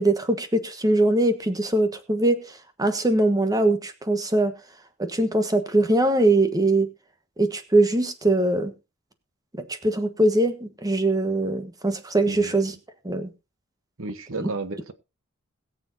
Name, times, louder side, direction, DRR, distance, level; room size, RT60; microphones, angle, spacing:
voice 1, 0.0-2.4 2.8-4.5 5.0-6.9 7.4-8.7 9.6-12.7 13.0-13.3 14.4-14.5, right 2 dB, 20° right, 9 dB, 1.3 m, -22 dB
voice 2, 12.2-12.6 14.0-14.9, right 3 dB, 70° right, 12 dB, 1.2 m, -33 dB
21.5 x 7.1 x 2.7 m, 0.27 s
head